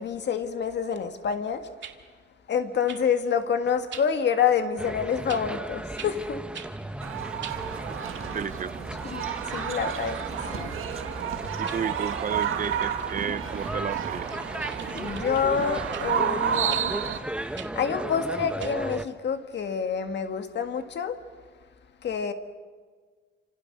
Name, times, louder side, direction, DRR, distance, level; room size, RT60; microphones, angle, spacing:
voice 1, 0.0-1.7 2.5-6.4 9.0-10.7 14.9-17.0 17.4-21.2 22.0-22.3, left 7 dB, 60° left, 1.8 m, -28 dB
sound 1, 1.8-2.0 2.9-3.0 3.9-4.1 5.3-5.5 6.0-6.1 6.5-6.7 7.4-7.6 11.2-11.3 11.7-11.8 12.4-13.5 14.3-15.4 15.9-16.1 16.7-16.9 17.6-17.7 18.6-18.7, right 8 dB, 60° right, 2.1 m, -42 dB
sound 2, 4.8-19.1, right 1 dB, 5° right, 1.0 m, -36 dB
sound 3, 7.0-17.2, right 9 dB, 85° right, 1.7 m, -31 dB
voice 2, 8.2-8.9 11.6-14.4, right 7 dB, 40° right, 0.8 m, -33 dB
29.5 x 26.5 x 6.7 m
wide cardioid pair, 150°, 21 cm